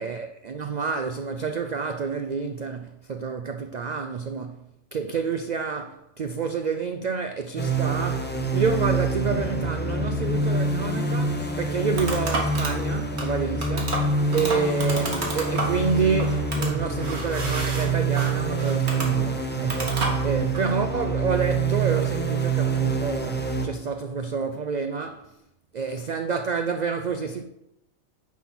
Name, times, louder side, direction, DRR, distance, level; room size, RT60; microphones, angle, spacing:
voice 1, 0.0-25.3 25.7-27.4, right 5 dB, 85° right, 0.3 m, -29 dB
sound 1, 7.6-23.7, right 3 dB, 10° left, 0.6 m, -26 dB
sound 2, 11.3-20.7, right 2 dB, 55° right, 1.9 m, -32 dB
9.3 x 4.2 x 5.9 m
omnidirectional pair, 1.4 m